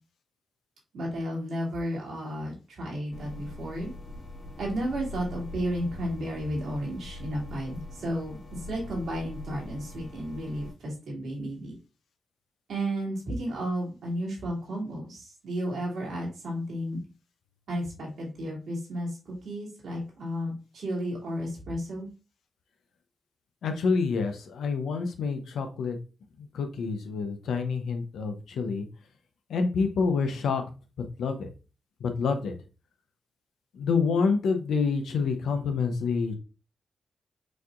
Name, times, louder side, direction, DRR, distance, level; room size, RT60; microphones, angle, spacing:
voice 1, 0.9-3.9 4.6-11.7 12.7-17.0 17.7-22.1, equal, 80° right, -3 dB, 2.4 m, -33 dB
sound 1, 3.1-10.7, left 2 dB, 55° left, 1.9 m, -42 dB
voice 2, 23.6-26.0 26.4-28.9 29.5-30.6 31.2-31.5 32.0-32.5 33.7-36.4, left 5 dB, 85° left, 6 dB, 0.7 m, -27 dB
6.3 x 2.9 x 2.5 m, 0.32 s
cardioid pair, 55°, 0 cm